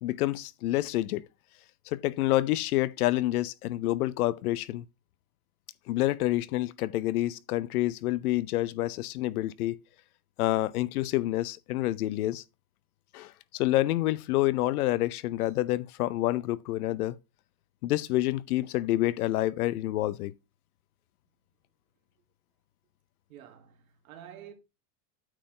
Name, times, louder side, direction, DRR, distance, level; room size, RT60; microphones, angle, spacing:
voice 1, 0.0-1.3 1.9-4.8 5.9-9.8 10.4-12.4 13.1-17.2 17.8-20.3, left 16 dB, 75° left, 0.7 m, -28 dB
voice 2, 23.3-24.5, right 10 dB, 65° right, 1.8 m, -49 dB
8.9 x 4.6 x 3.9 m
supercardioid pair, 180°, 44 cm